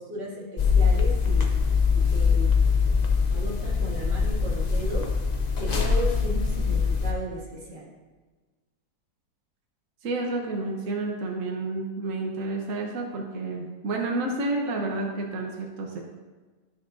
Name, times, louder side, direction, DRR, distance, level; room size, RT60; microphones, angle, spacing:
voice 1, 0.0-1.5 1.9-2.5 3.3-5.1 5.6-7.9, equal, 70° right, -5 dB, 2.8 m, -35 dB
sound 1, 0.6-7.1, left 5 dB, 80° left, 0.3 m, -23 dB
voice 2, 10.0-16.0, right 2 dB, 55° right, 0 dB, 1.2 m, -30 dB
12.5 x 6.6 x 2.6 m, 1.3 s
omnidirectional pair, 1.9 m